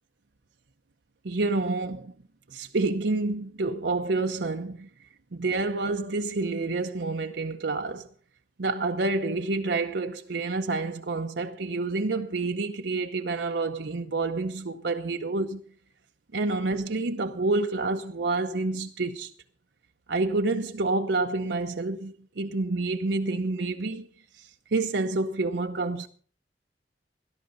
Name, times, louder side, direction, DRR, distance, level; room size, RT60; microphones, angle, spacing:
voice 1, 1.2-2.1 2.5-4.9 5.3-8.1 8.6-15.6 16.3-19.3 20.1-24.1 24.4-26.1, right 3 dB, 75° right, 0.8 m, -28 dB
18.0 x 11.5 x 3.9 m
head